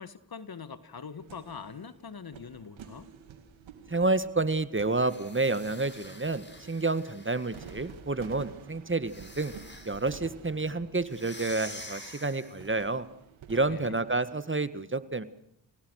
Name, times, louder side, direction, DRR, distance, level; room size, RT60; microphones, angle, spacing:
voice 1, 0.0-3.1 13.7-14.0, left 6 dB, 50° left, 12 dB, 1.9 m, -43 dB
sound 1, 1.2-14.2, right 7 dB, 85° right, 2.1 m, -51 dB
voice 2, 3.9-9.5 9.9-13.1 13.5-15.2, right 3 dB, 25° right, 12 dB, 1.8 m, -29 dB
sound 2, 4.9-7.9 9.0-10.2 11.1-12.8, left 1 dB, 25° left, 7.5 m, -47 dB
28.5 x 17.5 x 6.6 m, 0.78 s
supercardioid pair, 40°, 46 cm